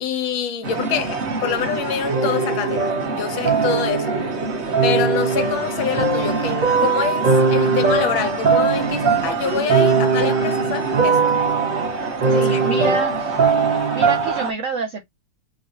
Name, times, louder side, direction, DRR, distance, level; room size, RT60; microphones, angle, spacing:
voice 1, 0.0-4.2 4.8-11.4 12.2-13.0, left 7 dB, 85° left, 1.6 m, -26 dB
sound 1, 0.6-14.5, right 3 dB, 45° right, 1.0 m, -27 dB
sound 2, 2.1-4.3 4.7-14.5, right 5 dB, 60° right, 2.2 m, -20 dB
voice 2, 12.3-13.4 13.9-15.0, right 5 dB, 85° right, 0.6 m, -27 dB
4.5 x 2.5 x 2.8 m
omnidirectional pair, 2.2 m